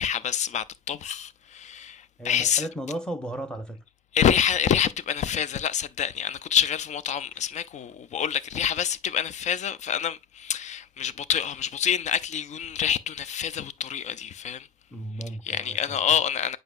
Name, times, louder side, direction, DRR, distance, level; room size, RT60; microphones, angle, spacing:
voice 1, 0.0-2.7 4.1-14.7 15.4-16.6, left 8 dB, 55° left, 0.5 m, -27 dB
voice 2, 2.2-3.8 14.9-16.0, right 1 dB, 5° left, 1.0 m, -35 dB
7.8 x 5.2 x 2.5 m
cardioid pair, 140°, 14 cm